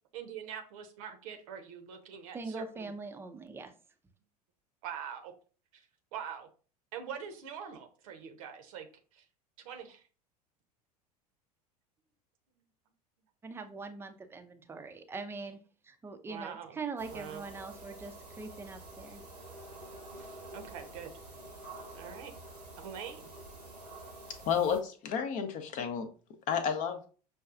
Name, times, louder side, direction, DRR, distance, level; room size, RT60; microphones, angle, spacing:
voice 1, 0.1-2.9 4.8-5.3 5.7-5.9 6.1-6.5 6.9-8.9 9.1-9.2 9.6-10.0 16.3-16.8 17.1-17.4 20.2-21.1 21.9-22.3 22.8-23.3, right 8 dB, 55° right, 5 dB, 0.7 m, -44 dB
voice 2, 2.3-3.7 13.4-15.6 15.8-19.2, right 4 dB, 10° right, 7 dB, 0.5 m, -42 dB
sound 1, 17.0-24.8, right 2 dB, 90° right, 1.0 m, -48 dB
voice 3, 24.4-26.1 26.5-27.1, left 7 dB, 40° left, 7 dB, 0.6 m, -31 dB
6.1 x 2.3 x 2.4 m, 0.37 s
figure-of-eight pair, 75°, 20 cm